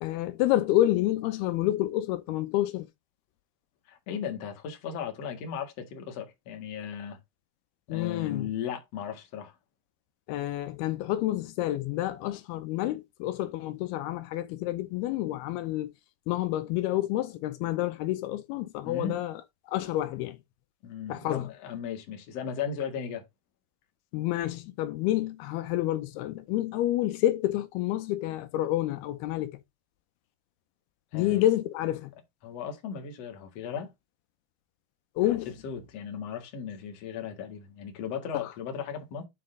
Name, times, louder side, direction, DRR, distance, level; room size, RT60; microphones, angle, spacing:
voice 1, 0.0-2.9 7.9-8.5 10.3-15.9 16.3-19.3 19.7-20.4 21.1-21.5 24.1-29.6 31.1-32.1 35.2-35.5, left 14 dB, 85° left, 2.7 m, -28 dB
voice 2, 3.9-7.2 7.9-9.6 18.8-19.2 20.8-23.2 31.1-31.4 32.4-33.9 35.3-35.4 35.6-39.2, left 7 dB, 50° left, 2.3 m, -36 dB
9.8 x 4.0 x 3.8 m
omnidirectional pair, 4.6 m